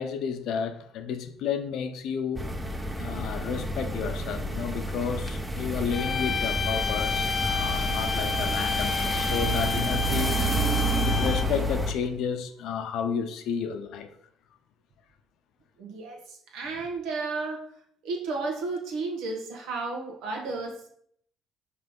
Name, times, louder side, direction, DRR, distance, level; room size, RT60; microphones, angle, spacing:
voice 1, 0.0-2.4 2.9-10.5 11.0-14.1, left 7 dB, 70° left, 0.8 m, -32 dB
sound 1, 2.4-11.9, right 1 dB, 10° right, 0.8 m, -29 dB
sound 2, 5.9-11.7, left 5 dB, 35° left, 0.4 m, -30 dB
sound 3, 6.0-12.3, right 2 dB, 45° right, 1.8 m, -45 dB
voice 2, 15.8-17.6 18.0-20.9, right 3 dB, 75° right, 1.6 m, -33 dB
5.6 x 3.3 x 5.4 m
cardioid pair, 95°, 0 cm